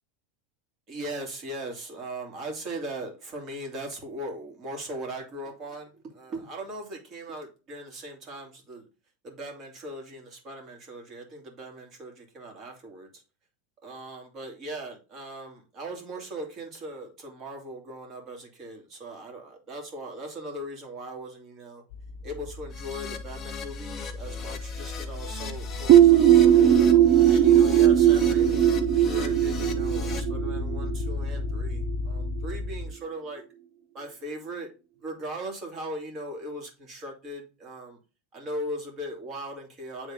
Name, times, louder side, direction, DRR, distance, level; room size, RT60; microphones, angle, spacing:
voice 1, 0.9-8.9 9.2-13.2 13.8-21.8 22.2-26.7 27.3-33.4 33.9-34.7 35.0-38.0 38.3-40.1, right 1 dB, 35° right, 2 dB, 2.4 m, -39 dB
sound 1, 21.9-32.9, left 3 dB, 60° left, 0.6 m, -34 dB
Keyboard (musical), 22.7-30.2, left 5 dB, 25° left, 1.3 m, -40 dB
sound 2, 25.9-31.5, right 11 dB, 55° right, 0.9 m, -18 dB
8.4 x 3.6 x 3.6 m, 0.31 s
supercardioid pair, 130°, 0 cm